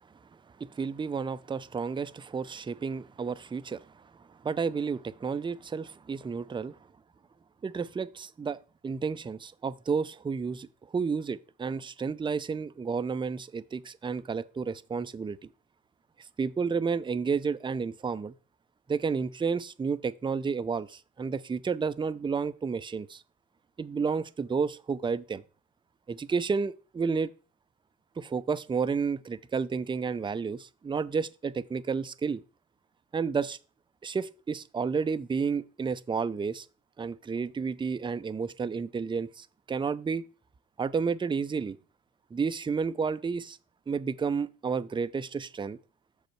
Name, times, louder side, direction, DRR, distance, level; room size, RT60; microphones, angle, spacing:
voice 1, 0.6-4.0 4.4-6.8 7.6-10.7 10.9-15.5 16.4-18.3 18.9-23.2 23.8-25.4 26.1-27.3 28.2-32.4 33.1-33.6 34.0-36.7 37.0-40.2 40.8-41.8 42.3-43.6 43.9-45.8, right 5 dB, 15° right, 0.5 m, -31 dB
6.4 x 5.0 x 4.5 m
supercardioid pair, 65°, 31 cm